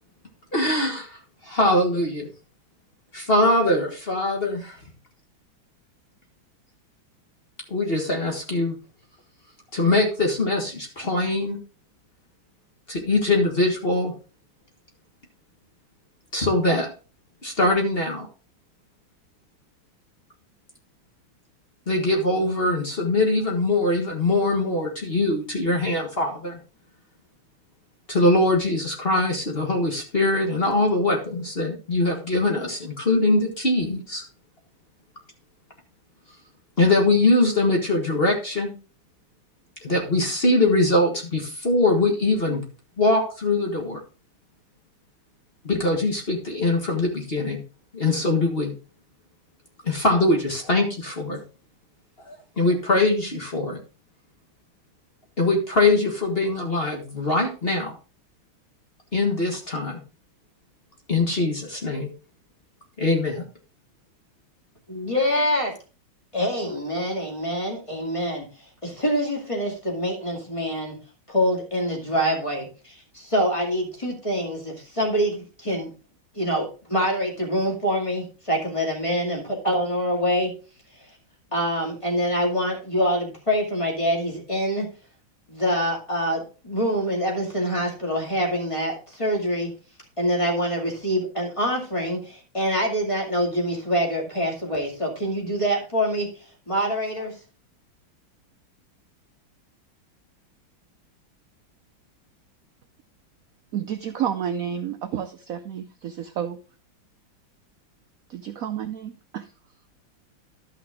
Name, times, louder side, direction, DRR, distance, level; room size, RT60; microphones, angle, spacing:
voice 1, 0.5-2.3 3.1-4.8 7.7-8.8 9.7-11.6 12.9-14.1 16.3-16.9 17.4-18.3 21.9-26.6 28.1-34.2 36.8-38.7 39.8-42.6 43.0-44.0 45.6-47.6 47.9-48.7 49.8-51.4 52.2-53.8 55.4-57.9 59.1-60.0 61.1-62.1 63.0-63.4, left 2 dB, 30° left, 2 dB, 1.6 m, -22 dB
voice 2, 64.9-65.7 66.3-68.5 68.8-71.0 71.3-75.9 76.3-80.5 81.5-84.9 85.5-89.7 90.2-96.3 96.7-97.3, equal, 15° left, -1 dB, 2.2 m, -25 dB
voice 3, 103.7-106.6 108.3-109.5, right 9 dB, 75° right, 8 dB, 0.8 m, -30 dB
12.0 x 5.8 x 3.6 m, 0.35 s
omnidirectional pair, 2.2 m